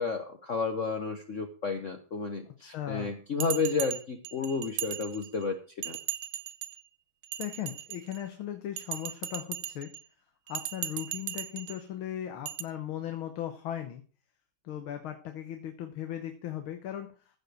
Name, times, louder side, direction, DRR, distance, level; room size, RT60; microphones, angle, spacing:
voice 1, 0.0-5.6 5.8-6.0, left 4 dB, 45° left, 5 dB, 1.2 m, -31 dB
voice 2, 2.6-3.1 7.4-9.9 10.5-14.0 14.6-17.2, left 11 dB, 80° left, 7 dB, 1.9 m, -37 dB
Bell, 3.4-5.5 5.8-6.8 7.2-8.3 8.8-10.0 10.5-11.8 12.5-12.6, right 12 dB, 85° right, 1.6 m, -37 dB
15.0 x 5.2 x 6.4 m, 0.38 s
omnidirectional pair, 2.2 m